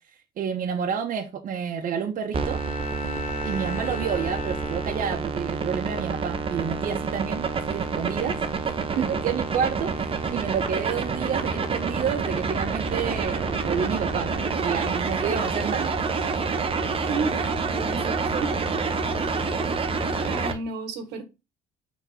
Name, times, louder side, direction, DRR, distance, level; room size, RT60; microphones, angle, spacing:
voice 1, 0.4-2.6 3.4-8.4 9.0-9.9 10.3-16.3 18.2-18.4, right 7 dB, 55° right, 1.3 m, -29 dB
Bowed string instrument, 2.3-5.5, left 4 dB, 60° left, 1.5 m, -37 dB
sound 1, 2.3-20.5, right 4 dB, 35° right, 1.0 m, -28 dB
voice 2, 17.1-18.5 19.3-19.5 20.2-21.2, right 4 dB, 80° right, 1.7 m, -32 dB
6.0 x 4.4 x 5.7 m
cardioid pair, 110°, 17 cm